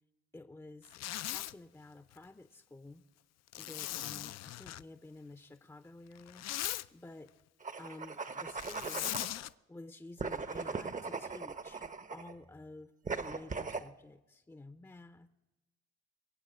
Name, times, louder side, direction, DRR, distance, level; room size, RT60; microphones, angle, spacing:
voice 1, 0.3-3.0 3.6-7.3 7.8-9.1 9.7-12.9 13.2-15.3, left 2 dB, 10° left, 11 dB, 0.6 m, -52 dB
Zipper (clothing), 0.8-1.5 3.5-4.8 6.1-6.9 8.6-9.5, left 14 dB, 60° left, 0.4 m, -39 dB
sound 1, 7.6-9.3 10.2-12.3 13.1-13.9, right 4 dB, 25° right, 0.7 m, -39 dB
21.5 x 8.1 x 7.9 m, 1.0 s
cardioid pair, 90°, 30 cm